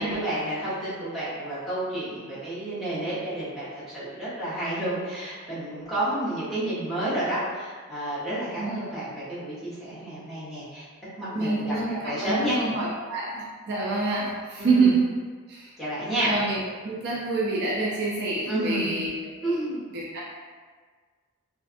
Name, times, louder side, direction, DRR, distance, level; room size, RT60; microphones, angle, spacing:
voice 1, 0.0-10.8 11.2-12.6 14.6-14.9 15.8-16.3 18.5-18.9 19.4-19.8, right 1 dB, ahead, -12 dB, 1.0 m, -30 dB
voice 2, 8.6-8.9 11.3-15.1 15.5-15.7 16.2-19.1 19.4-19.6 19.9-20.2, right 3 dB, 50° right, -5 dB, 0.4 m, -27 dB
2.5 x 2.4 x 2.4 m, 1.5 s
head